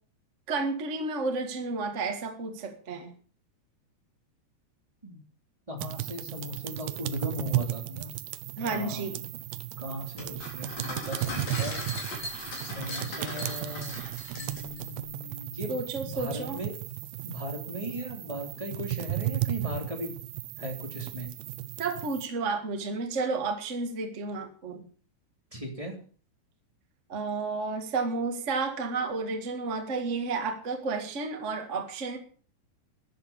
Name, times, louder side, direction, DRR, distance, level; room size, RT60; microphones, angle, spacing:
voice 1, 0.5-3.1 8.6-9.2 15.7-16.6 21.8-24.8 27.1-32.2, right 4 dB, 50° right, 4 dB, 0.8 m, -31 dB
voice 2, 5.7-8.1 8.6-9.2 9.8-11.8 12.6-14.0 14.3-16.7 17.2-20.2 20.6-21.3 25.5-25.9, equal, 10° right, 1 dB, 2.5 m, -37 dB
sound 1, 5.8-22.3, right 15 dB, 75° right, 2.3 m, -35 dB
sound 2, 10.2-14.8, left 2 dB, 45° left, 5.1 m, -38 dB
13.0 x 10.5 x 7.0 m, 0.43 s
omnidirectional pair, 4.7 m